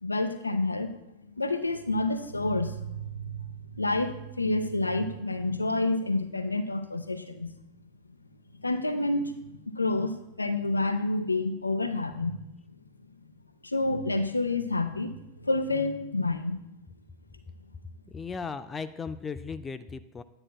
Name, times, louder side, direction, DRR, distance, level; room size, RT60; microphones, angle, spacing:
voice 1, 0.0-1.0 1.4-7.5 8.6-12.5 13.6-15.1 15.4-16.6, left 2 dB, 80° left, 9 dB, 0.5 m, -29 dB
voice 2, 18.1-20.2, left 5 dB, 15° left, 11 dB, 0.3 m, -36 dB
9.7 x 9.6 x 2.2 m, 0.89 s
figure-of-eight pair, 90°, 0 cm